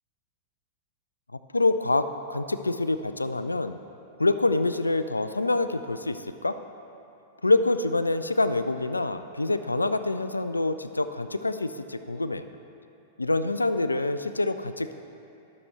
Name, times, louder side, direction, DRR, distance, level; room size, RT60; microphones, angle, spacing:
voice 1, 1.5-3.8 4.2-6.6 7.4-12.4 13.2-14.9, left 2 dB, 90° left, 11 dB, 0.3 m, -26 dB
12.5 x 6.6 x 3.2 m, 2.9 s
figure-of-eight pair, 100°, 0 cm